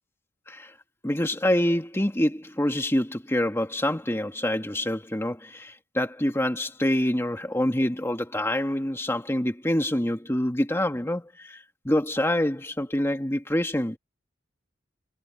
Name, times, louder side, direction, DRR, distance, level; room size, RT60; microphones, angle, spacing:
voice 1, 1.0-14.0, left 1 dB, 15° left, 1.7 m, -26 dB
head